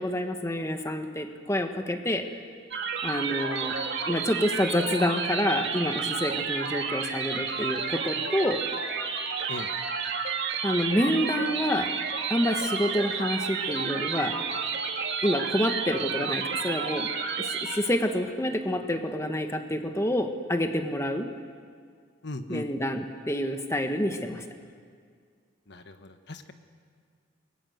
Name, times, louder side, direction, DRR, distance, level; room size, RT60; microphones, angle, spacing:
voice 1, 0.0-2.3 3.0-3.8 4.1-8.6 10.6-11.9 12.3-14.4 15.2-17.1 17.4-21.3 22.5-24.4, left 1 dB, 15° left, 6 dB, 1.3 m, -28 dB
sound 1, 2.7-17.8, right 5 dB, 55° right, 2.5 m, -31 dB
voice 2, 22.2-22.7 25.7-26.5, left 2 dB, 55° left, 8 dB, 1.3 m, -38 dB
29.0 x 22.0 x 7.9 m, 2.1 s
head